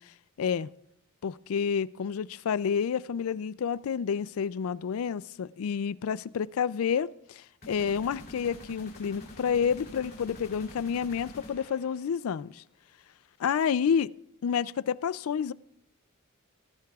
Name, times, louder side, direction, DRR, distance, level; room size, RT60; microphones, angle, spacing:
voice 1, 0.4-0.7 1.2-12.6 13.4-14.1 14.4-15.5, left 7 dB, 65° left, 0.4 m, -29 dB
sound 1, 7.6-12.4, left 1 dB, 45° left, 2.7 m, -47 dB
18.0 x 16.0 x 2.4 m
head